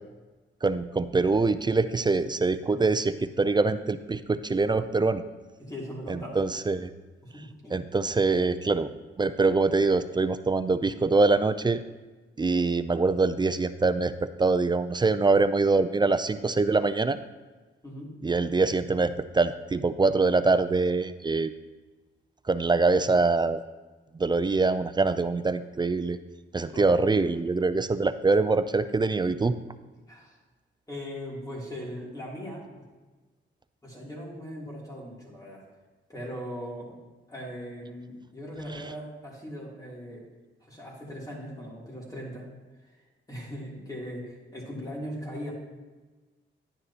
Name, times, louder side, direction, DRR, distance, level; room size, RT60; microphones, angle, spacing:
voice 1, 0.6-5.2 6.1-6.9 7.7-8.9 9.2-11.8 12.4-17.2 18.2-21.5 22.5-23.6 24.2-26.2 26.5-29.5 38.7-38.8, right 3 dB, 20° right, 12 dB, 0.4 m, -24 dB
voice 2, 5.6-6.4 7.2-7.7 17.8-18.1 26.7-26.9 30.1-30.4 30.9-32.9 33.8-35.6 36.1-37.0 37.3-40.2 40.6-42.5 42.9-43.0 43.3-45.5, equal, 15° left, -4 dB, 2.9 m, -39 dB
11.0 x 9.5 x 2.9 m, 1.3 s
cardioid pair, 100°, 20 cm